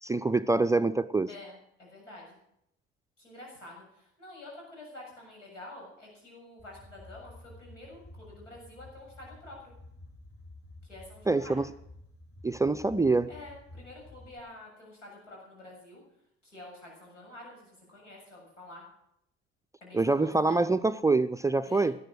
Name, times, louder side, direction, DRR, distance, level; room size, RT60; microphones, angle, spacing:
voice 1, 0.0-1.3 11.3-11.7 12.4-13.3 19.9-22.0, right 3 dB, 10° right, 11 dB, 0.5 m, -25 dB
voice 2, 1.3-2.4 3.2-9.7 10.8-11.6 13.3-16.0 16.4-18.8 19.8-20.6 21.6-21.9, left 2 dB, 80° left, -1 dB, 7.2 m, -48 dB
sound 1, 6.6-14.4, left 1 dB, 35° left, 5.3 m, -51 dB
18.0 x 11.5 x 6.4 m, 0.75 s
figure-of-eight pair, 55°, 37 cm